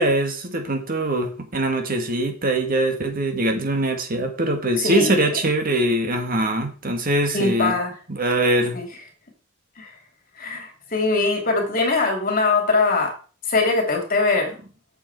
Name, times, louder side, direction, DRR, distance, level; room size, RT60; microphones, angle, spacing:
voice 1, 0.0-7.7 8.1-8.8, right 1 dB, 45° right, 5 dB, 1.8 m, -22 dB
voice 2, 4.8-5.3 7.3-7.9 8.7-8.9 9.8-9.9 10.4-13.1 13.5-14.5, left 3 dB, 45° left, 3 dB, 2.7 m, -22 dB
8.0 x 6.9 x 4.7 m, 0.37 s
head